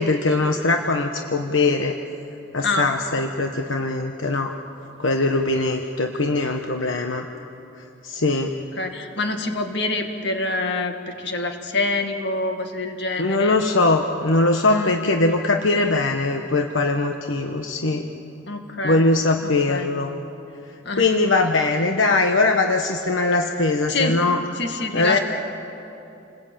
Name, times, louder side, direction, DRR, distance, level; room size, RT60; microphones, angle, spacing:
voice 1, 0.0-2.0 2.5-4.6 5.0-7.3 8.0-8.5 13.2-18.1 18.8-20.2 21.0-24.4 24.9-25.2, left 3 dB, 80° left, 4 dB, 1.2 m, -21 dB
voice 2, 2.6-2.9 8.8-13.6 14.7-14.9 18.5-19.0 19.7-19.9 20.8-21.1 23.9-24.2 24.6-25.2, left 2 dB, 60° left, 5 dB, 2.3 m, -26 dB
29.0 x 20.5 x 8.8 m, 2.8 s
head